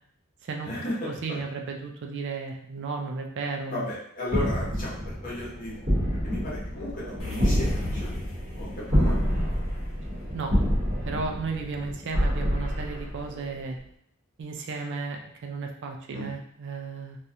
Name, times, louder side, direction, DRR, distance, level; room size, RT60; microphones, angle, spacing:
voice 1, 0.6-1.4 3.7-5.8 6.2-8.1 8.5-9.2 16.1-16.3, left 1 dB, 40° left, -6 dB, 0.9 m, -35 dB
voice 2, 1.2-3.9 10.3-10.5 11.1-13.8 14.4-17.2, right 4 dB, 55° right, 2 dB, 0.3 m, -34 dB
sound 1, 4.3-13.6, equal, 40° right, 0.9 m, -28 dB
sound 2, 7.2-11.7, left 5 dB, 75° left, 0.9 m, -42 dB
2.4 x 2.0 x 2.7 m, 0.70 s
head